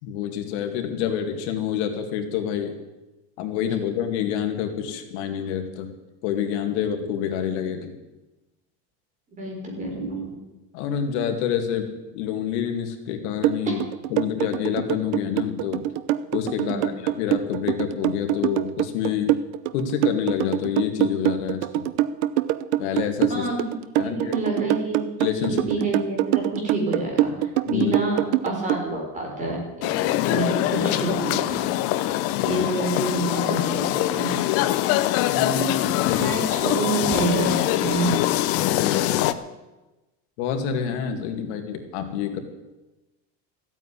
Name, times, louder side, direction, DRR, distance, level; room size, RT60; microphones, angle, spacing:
voice 1, 0.0-2.8 3.4-5.9 6.2-7.9 10.7-13.8 14.1-15.8 16.3-19.3 19.7-21.9 22.8-23.5 24.0-24.3 25.2-25.6 27.7-28.0 32.3-32.6 35.3-36.2 38.6-39.2 40.4-42.4, left 8 dB, 75° left, 5 dB, 2.4 m, -27 dB
voice 2, 9.4-10.4 13.6-13.8 16.5-16.9 23.3-23.6 24.0-25.0 25.7-31.7 32.4-34.3 36.1-38.1, right 2 dB, 20° right, 0 dB, 4.5 m, -28 dB
sound 1, 13.4-28.8, right 14 dB, 75° right, 0.9 m, -24 dB
sound 2, 29.8-39.3, left 14 dB, 40° left, 0.8 m, -23 dB
14.5 x 9.0 x 9.9 m, 1.1 s
cardioid pair, 175°, 34 cm